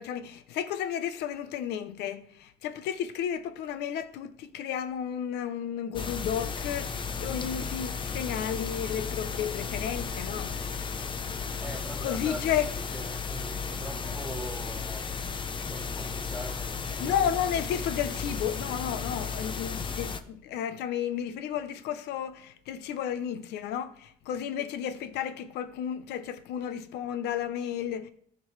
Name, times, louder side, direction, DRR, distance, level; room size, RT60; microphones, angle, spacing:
voice 1, 0.0-10.5 12.0-12.7 15.6-15.7 17.0-28.1, left 9 dB, 80° left, 0.8 m, -32 dB
sound 1, 5.9-20.2, left 5 dB, 30° left, 0.7 m, -34 dB
voice 2, 11.6-15.2 15.7-17.4, right 1 dB, 5° right, 1.4 m, -42 dB
14.0 x 5.2 x 3.2 m
cardioid pair, 110°, 17 cm